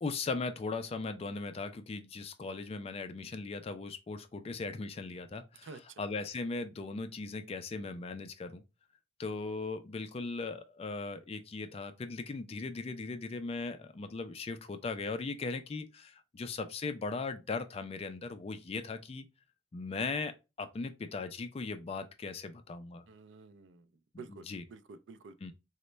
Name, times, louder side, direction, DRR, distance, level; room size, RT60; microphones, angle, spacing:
voice 1, 0.0-5.7 6.0-8.6 9.2-19.3 19.7-20.3 20.6-23.0 24.3-24.6 25.4-25.5, left 3 dB, 35° left, 0.3 m, -38 dB
voice 2, 23.1-23.9 24.2-25.4, right 4 dB, 75° right, 0.4 m, -50 dB
3.9 x 2.1 x 3.2 m
head